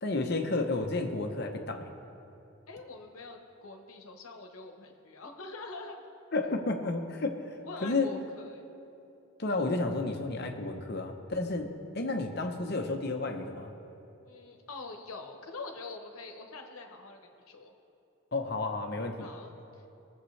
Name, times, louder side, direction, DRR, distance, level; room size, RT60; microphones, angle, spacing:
voice 1, 0.0-1.9 6.3-7.4 7.8-8.1 9.4-11.7 11.9-13.7 18.3-19.3, left 3 dB, 50° left, 4 dB, 0.9 m, -31 dB
voice 2, 2.7-6.0 7.6-8.6 14.3-17.2 17.5-17.7 19.2-19.7, left 3 dB, 90° left, 3 dB, 1.1 m, -44 dB
20.5 x 7.3 x 3.3 m, 2.8 s
head